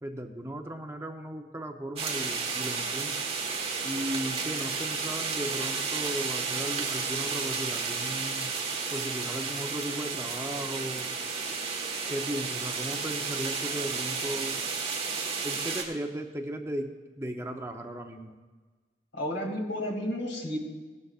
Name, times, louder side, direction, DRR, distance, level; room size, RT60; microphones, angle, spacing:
voice 1, 0.0-3.3 3.8-8.5 8.9-11.1 12.1-14.6 15.4-18.4, equal, 15° right, 4 dB, 0.7 m, -36 dB
sound 1, 2.0-15.8, right 5 dB, 35° right, 1.5 m, -32 dB
voice 2, 19.1-20.6, equal, 80° left, 1 dB, 2.4 m, -32 dB
17.5 x 12.0 x 2.4 m, 1.3 s
head